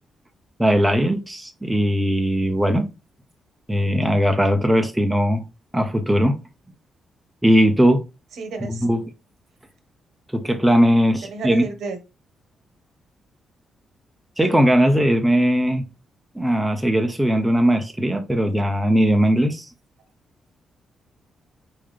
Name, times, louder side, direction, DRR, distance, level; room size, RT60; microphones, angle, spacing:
voice 1, 0.6-2.9 3.7-5.4 5.7-6.4 7.4-8.0 8.7-9.0 10.3-11.6 14.4-15.8 16.4-19.7, equal, 5° right, 0.5 m, -19 dB
voice 2, 8.3-8.9 11.3-12.0, right 4 dB, 70° right, 1.1 m, -31 dB
4.3 x 3.6 x 3.3 m
wide cardioid pair, 165°, 0 cm